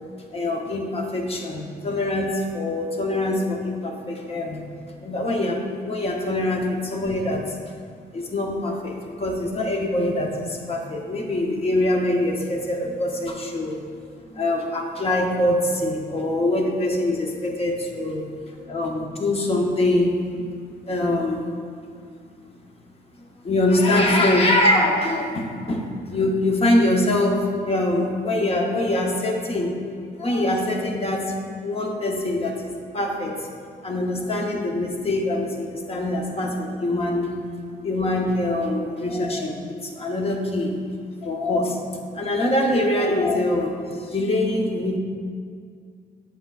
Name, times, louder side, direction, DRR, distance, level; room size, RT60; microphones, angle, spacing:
voice 1, 0.3-4.6 5.0-7.6 8.1-13.8 14.3-18.3 18.7-20.4 20.9-21.5 23.4-29.8 30.2-31.3 31.6-33.4 33.8-37.3 37.8-40.8 41.2-41.8 42.1-45.0, left 1 dB, 35° left, 1 dB, 0.8 m, -24 dB
7.6 x 7.4 x 2.4 m, 2.2 s
cardioid pair, 135°, 17 cm